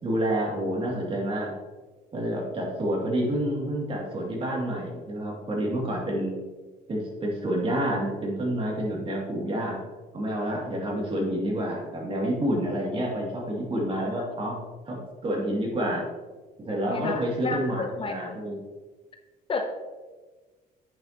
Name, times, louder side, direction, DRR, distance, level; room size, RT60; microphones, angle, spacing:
voice 1, 0.0-1.5 2.1-6.3 6.9-9.8 10.1-14.6 14.9-16.0 16.6-18.6, right 1 dB, 30° right, -3 dB, 2.5 m, -28 dB
voice 2, 16.9-18.3 19.5-19.8, left 3 dB, 30° left, 5 dB, 0.7 m, -32 dB
8.7 x 6.7 x 2.9 m, 1.3 s
cardioid pair, 110°, 17 cm